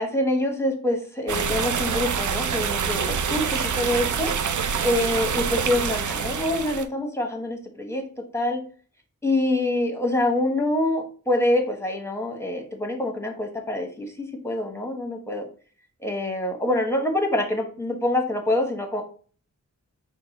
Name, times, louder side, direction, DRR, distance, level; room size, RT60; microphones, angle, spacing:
voice 1, 0.0-4.3 4.8-8.0 8.3-8.6 9.2-15.5 16.0-19.0, left 1 dB, 10° left, 2 dB, 1.0 m, -25 dB
sound 1, 1.3-6.8, right 7 dB, 70° right, 0.5 m, -26 dB
4.8 x 2.1 x 4.0 m, 0.42 s
wide cardioid pair, 60°, 31 cm